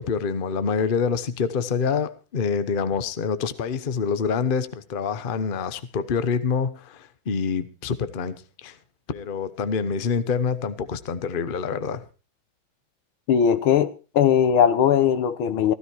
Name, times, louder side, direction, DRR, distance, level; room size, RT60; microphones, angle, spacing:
voice 1, 0.0-8.8 9.1-12.1, left 6 dB, 40° left, 0.8 m, -26 dB
voice 2, 13.3-13.9 14.2-15.7, left 8 dB, 90° left, 1.9 m, -19 dB
15.5 x 13.0 x 4.6 m
omnidirectional pair, 2.2 m